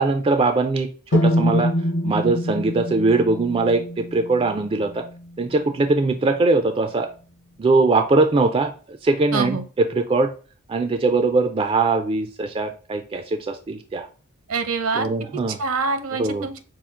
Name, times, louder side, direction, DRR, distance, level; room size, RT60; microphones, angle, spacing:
voice 1, 0.0-1.7 2.0-5.0 5.4-7.1 7.6-10.3 10.7-14.1 15.0-15.6 16.2-16.5, right 3 dB, 25° right, 7 dB, 0.3 m, -21 dB
sound 1, 1.1-5.1, equal, 55° left, 0.6 m, -24 dB
voice 2, 9.3-9.7 14.5-15.1 15.5-16.6, right 4 dB, 65° right, 9 dB, 0.7 m, -25 dB
5.7 x 2.4 x 3.6 m, 0.37 s
head